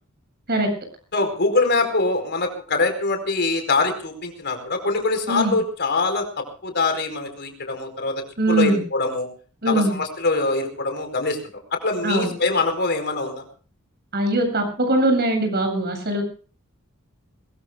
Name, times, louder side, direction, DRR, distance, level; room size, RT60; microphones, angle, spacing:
voice 1, 1.1-8.2 8.5-9.3 9.7-11.4 11.7-13.4, left 3 dB, 55° left, 6 dB, 4.6 m, -23 dB
voice 2, 8.4-8.8 9.6-9.9 12.0-12.3 14.1-16.2, right 1 dB, 50° right, 5 dB, 7.9 m, -21 dB
22.5 x 22.0 x 2.3 m, 0.40 s
head